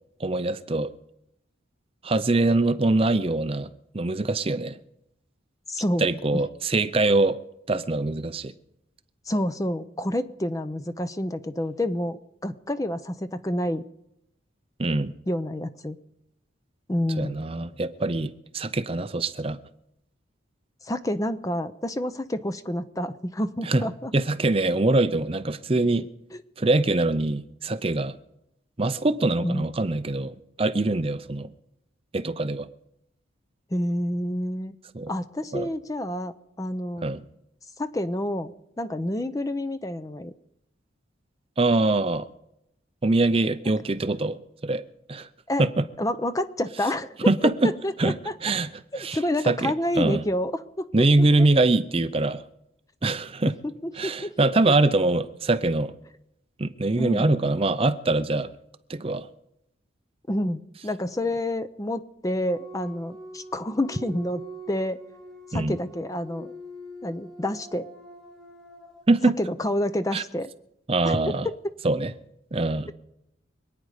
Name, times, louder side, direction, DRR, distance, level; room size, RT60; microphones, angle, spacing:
voice 1, 0.2-0.9 2.0-4.8 6.0-7.4 7.7-8.5 14.8-15.1 17.2-19.6 23.7-23.8 24.1-26.1 26.6-28.2 28.8-31.5 32.1-32.7 34.9-35.1 35.5-35.7 37.0-37.2 41.6-42.3 43.0-44.8 45.1-45.3 45.6-45.8 47.2-47.7 48.0-48.1 48.4-48.7 49.0-49.2 49.4-50.2 50.9-52.4 53.0-53.5 54.0-55.9 56.6-58.5 58.9-59.3 65.5-65.8 69.1-69.3 70.1-70.2 70.9-71.5 71.8-72.1 72.5-72.9, right 2 dB, 30° right, 11 dB, 0.6 m, -23 dB
voice 2, 5.7-6.1 9.3-13.8 15.3-16.0 16.9-17.4 20.8-24.1 29.4-29.7 33.7-34.7 35.1-37.0 37.8-40.3 45.5-45.7 46.0-47.3 47.6-48.3 49.1-51.1 53.6-54.7 57.0-57.3 60.3-64.4 64.7-65.0 65.5-66.5 67.0-67.9 69.4-70.5 71.0-71.2 71.4-71.7, left 1 dB, 15° left, 11 dB, 0.5 m, -28 dB
sound 1, 62.4-69.0, right 1 dB, ahead, 3.0 m, -44 dB
25.5 x 9.4 x 5.0 m, 0.80 s
head